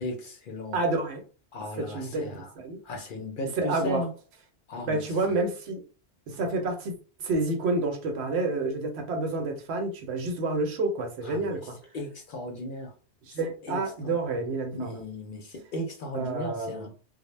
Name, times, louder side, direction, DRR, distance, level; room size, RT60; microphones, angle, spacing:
voice 1, 0.0-0.8 1.5-2.5 2.8-4.1 4.7-5.0 6.3-6.4 11.2-11.5 11.9-12.9 13.6-14.1 14.7-16.9, left 1 dB, 60° left, 0.6 m, -36 dB
voice 2, 0.7-1.2 1.8-2.8 3.6-4.1 4.9-5.8 6.3-6.9 7.2-11.8 13.2-15.0 16.1-16.9, right 2 dB, 75° right, 0.9 m, -29 dB
2.1 x 2.0 x 3.1 m
omnidirectional pair, 1.1 m